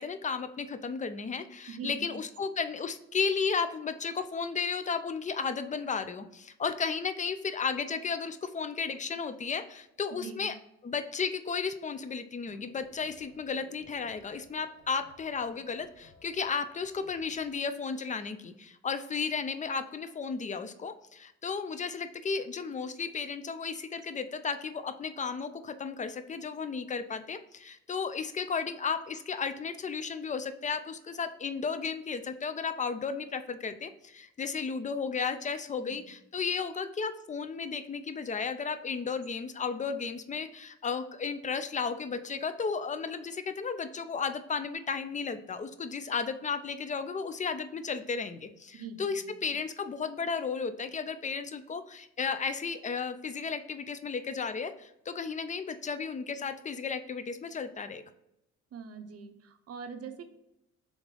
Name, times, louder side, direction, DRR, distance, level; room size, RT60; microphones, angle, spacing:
voice 1, 0.0-10.5 10.8-58.0, left 5 dB, 25° left, 10 dB, 0.4 m, -34 dB
voice 2, 1.7-2.2 10.1-10.5 35.9-36.1 48.7-49.4 58.7-60.3, right 5 dB, 55° right, 7 dB, 0.7 m, -43 dB
sound 1, 12.4-17.5, left 3 dB, 80° left, 1.1 m, -59 dB
3.6 x 3.3 x 3.7 m, 0.85 s
cardioid pair, 90°, 30 cm